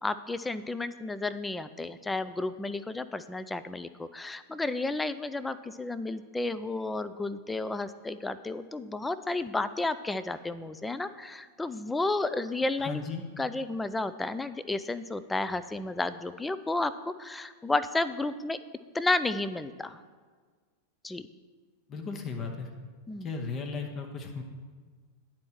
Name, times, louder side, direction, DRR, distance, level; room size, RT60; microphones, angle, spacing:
voice 1, 0.0-13.0 13.4-18.6 18.9-20.0 21.0-21.3 23.1-23.3, left 2 dB, 10° left, 13 dB, 0.4 m, -32 dB
voice 2, 12.8-13.2 21.9-22.7 23.2-24.4, left 4 dB, 30° left, 4 dB, 0.9 m, -36 dB
10.5 x 4.3 x 6.1 m, 1.5 s
figure-of-eight pair, 90°, 0 cm